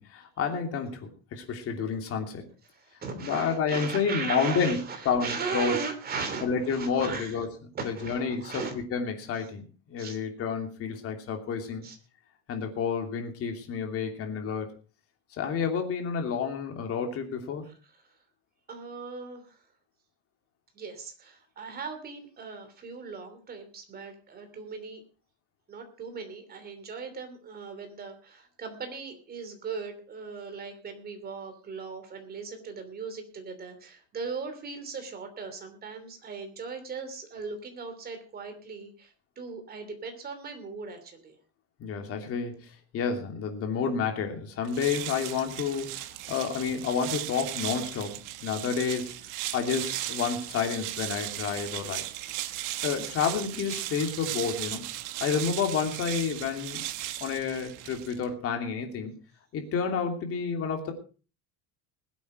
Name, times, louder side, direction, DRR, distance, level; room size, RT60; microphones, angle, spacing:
voice 1, 0.0-2.4 3.2-4.8 5.0-5.7 6.4-7.5 7.8-8.6 8.9-9.6 9.9-11.9 12.5-14.7 15.4-17.6 41.8-42.6 42.9-45.9 46.3-49.1 49.5-52.0 52.8-54.8 55.2-56.8 57.2-59.1 59.5-60.9, left 6 dB, 35° left, 4 dB, 3.0 m, -30 dB
voice 2, 2.6-7.4 7.7-8.7 9.3-9.5 10.0-10.2 11.8-12.0 17.6-18.1 18.7-19.6 20.7-25.0 25.7-41.4, right 5 dB, 25° right, 6 dB, 3.0 m, -38 dB
sound 1, 44.6-58.3, right 15 dB, 55° right, 1.1 m, -37 dB
20.5 x 8.4 x 4.9 m, 0.37 s
cardioid pair, 170°, 38 cm